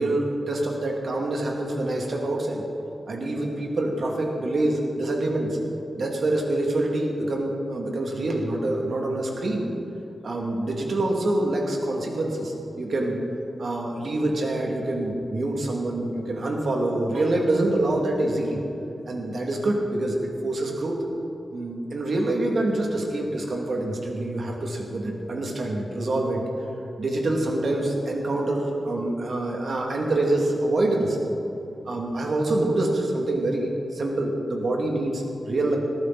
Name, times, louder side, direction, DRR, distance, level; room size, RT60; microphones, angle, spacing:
voice 1, 0.0-2.6 3.1-5.6 6.0-9.7 10.2-13.2 13.6-18.6 19.1-21.0 21.5-26.4 27.0-31.2 31.9-35.8, right 2 dB, 55° right, 0 dB, 2.5 m, -26 dB
19.0 x 14.0 x 4.2 m, 2.9 s
wide cardioid pair, 165°, 0 cm